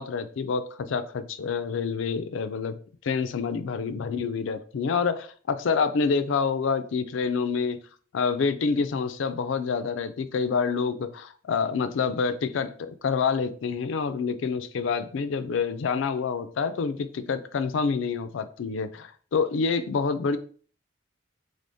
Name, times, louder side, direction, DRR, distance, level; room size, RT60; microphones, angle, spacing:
voice 1, 0.0-2.8 3.0-7.8 8.1-20.4, left 5 dB, 70° left, 11 dB, 0.4 m, -27 dB
3.4 x 3.4 x 2.6 m, 0.43 s
head